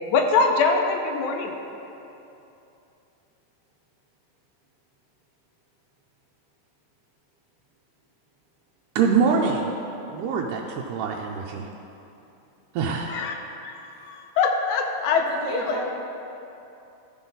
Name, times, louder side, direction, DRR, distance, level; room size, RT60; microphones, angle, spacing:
voice 1, 0.0-1.6 13.1-13.3 13.6-15.3 15.5-15.8, left 4 dB, 80° left, 3 dB, 1.9 m, -23 dB
voice 2, 9.0-9.7 10.1-11.7 12.7-13.1, right 5 dB, 85° right, 0 dB, 2.1 m, -24 dB
voice 3, 15.3-15.8, right 3 dB, 35° right, -6 dB, 1.6 m, -31 dB
14.0 x 5.5 x 3.9 m, 2.9 s
omnidirectional pair, 3.6 m